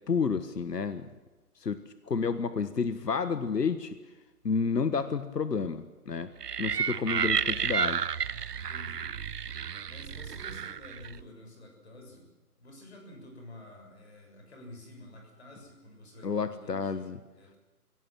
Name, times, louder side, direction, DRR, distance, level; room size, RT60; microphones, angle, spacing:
voice 1, 0.1-1.1 1.6-4.0 4.4-6.3 6.6-8.1 16.2-17.2, left 5 dB, 90° left, 11 dB, 1.5 m, -30 dB
sound 1, 6.4-11.2, right 7 dB, 80° right, 0.9 m, -31 dB
voice 2, 8.5-9.2 9.9-12.3 12.6-17.6, left 1 dB, 40° left, 2 dB, 6.9 m, -50 dB
24.0 x 17.5 x 7.5 m, 1.2 s
hypercardioid pair, 175°, 47 cm